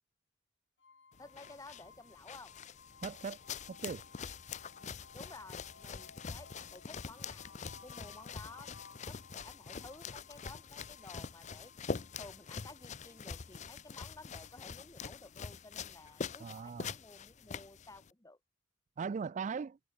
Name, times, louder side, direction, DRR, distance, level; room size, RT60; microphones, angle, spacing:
sound 1, 0.8-15.7, left 5 dB, 75° left, 1.3 m, -60 dB
sound 2, 1.1-18.1, left 5 dB, 40° left, 0.6 m, -45 dB
voice 1, 1.2-2.5 5.1-8.7 9.1-11.7 12.2-18.4, left 2 dB, 20° left, 2.0 m, -54 dB
voice 2, 3.0-3.4 3.7-4.0 16.4-16.9 19.0-19.8, right 5 dB, 40° right, 0.3 m, -39 dB
head